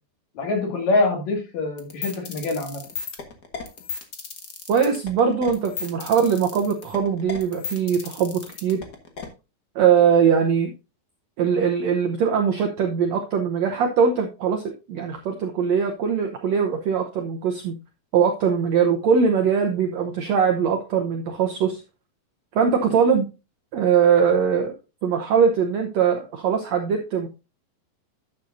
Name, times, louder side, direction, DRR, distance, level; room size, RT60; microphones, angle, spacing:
voice 1, 0.3-2.8, left 2 dB, 50° left, 3 dB, 3.2 m, -24 dB
sound 1, 1.8-9.3, left 6 dB, 85° left, 0.8 m, -34 dB
voice 2, 4.7-8.8 9.7-10.7 11.4-17.7 18.1-21.8 22.5-23.3 23.7-24.7 25.0-27.3, right 6 dB, 80° right, 4 dB, 1.5 m, -21 dB
11.0 x 7.8 x 2.7 m, 0.28 s
omnidirectional pair, 4.4 m